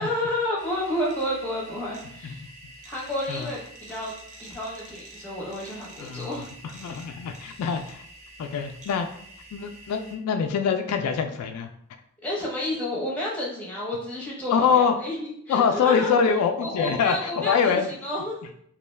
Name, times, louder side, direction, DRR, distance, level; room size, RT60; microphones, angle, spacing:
voice 1, 0.0-2.4 2.9-4.1 4.4-6.4 6.8-7.0 12.2-16.1 16.6-18.4, left 1 dB, 5° left, -5 dB, 0.8 m, -30 dB
sound 1, 0.6-10.2, right 2 dB, 35° right, 0.5 m, -47 dB
voice 2, 6.0-6.4 6.7-8.0 8.4-9.1 9.5-11.7 14.5-14.9 15.5-17.9, left 6 dB, 85° left, 6 dB, 0.3 m, -24 dB
2.4 x 2.2 x 3.2 m, 0.66 s
head